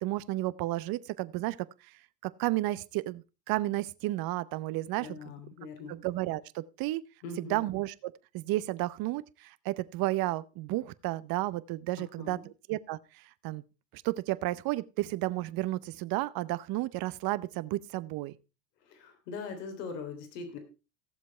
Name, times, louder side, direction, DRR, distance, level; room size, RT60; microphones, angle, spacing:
voice 1, 0.0-1.6 2.2-5.2 5.9-7.0 7.4-13.6 13.9-18.4, right 17 dB, 45° right, 0.8 m, -32 dB
voice 2, 5.0-6.0 7.2-7.6 12.2-12.5 18.8-20.6, left 4 dB, 70° left, 3.3 m, -41 dB
15.5 x 7.4 x 4.4 m
hypercardioid pair, 85°, 49 cm